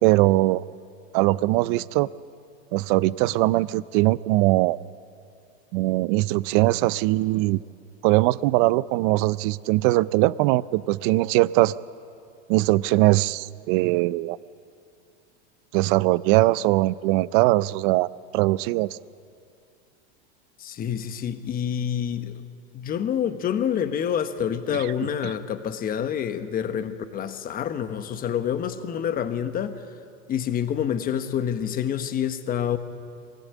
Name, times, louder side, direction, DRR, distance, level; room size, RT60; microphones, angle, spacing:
voice 1, 0.0-0.6 1.1-2.1 2.7-4.8 5.7-7.6 8.0-11.7 12.5-14.4 15.7-19.0, right 19 dB, 55° right, 19 dB, 0.5 m, -21 dB
voice 2, 20.6-22.3 22.7-29.8 30.3-32.8, left 9 dB, 25° left, 10 dB, 1.1 m, -27 dB
23.0 x 17.5 x 8.3 m, 2.5 s
supercardioid pair, 135°, 32 cm